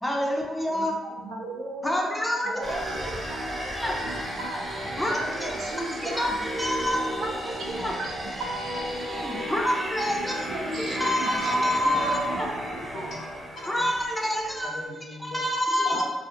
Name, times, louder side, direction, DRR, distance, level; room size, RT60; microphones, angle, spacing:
voice 1, 0.0-0.9 1.8-2.8 3.0-3.1 3.7-3.9 4.9-5.7 6.0-7.2 7.8-7.9 9.2-10.5 10.8-12.5 13.7-14.8 15.2-16.0, left 1 dB, 5° left, -2 dB, 0.5 m, -27 dB
voice 2, 0.7-3.1 4.4-4.7 5.1-6.3 7.2-7.3 7.5-7.6 8.0-8.1 8.4-9.5 10.5-11.6 11.8-13.1 15.8-16.0, right 2 dB, 75° right, -1 dB, 0.5 m, -36 dB
sound 1, 2.6-14.8, equal, 25° right, 0.7 m, -33 dB
voice 3, 12.7-13.9 14.6-15.4 15.8-16.0, left 2 dB, 70° left, -6 dB, 0.8 m, -40 dB
2.4 x 2.0 x 2.6 m, 1.2 s
cardioid pair, 90°, 0 cm